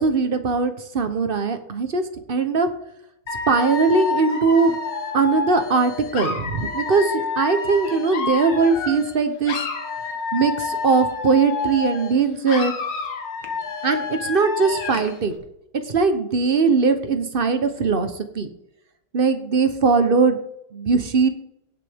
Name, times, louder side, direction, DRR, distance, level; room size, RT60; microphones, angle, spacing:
voice 1, 0.0-2.0 2.3-2.7 3.5-4.8 5.1-9.6 10.3-12.7 13.8-15.3 15.9-18.5 19.1-20.4 20.7-21.3, right 4 dB, 40° right, 9 dB, 0.9 m, -20 dB
Dog / Alarm, 3.3-9.2 9.4-12.2 12.5-15.2, left 4 dB, 65° left, 2.0 m, -29 dB
17.5 x 6.5 x 3.6 m, 0.78 s
omnidirectional pair, 2.1 m